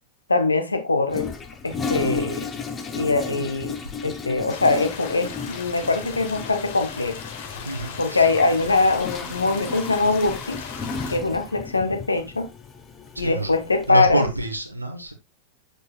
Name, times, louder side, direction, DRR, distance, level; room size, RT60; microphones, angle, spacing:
voice 1, 0.3-1.3 1.6-2.5 2.9-7.2 8.0-10.6 11.1-12.5 13.2-14.3, left 3 dB, 80° left, 1.2 m, -22 dB
Toilet flush, 1.1-13.9, left 5 dB, 20° left, 1.1 m, -34 dB
voice 2, 2.0-2.3 7.6-8.3 13.1-13.5 13.9-15.1, right 1 dB, 85° right, 1.2 m, -27 dB
sound 1, 4.5-11.2, left 7 dB, 55° left, 1.6 m, -38 dB
8.2 x 6.8 x 2.4 m
figure-of-eight pair, 90°, 0 cm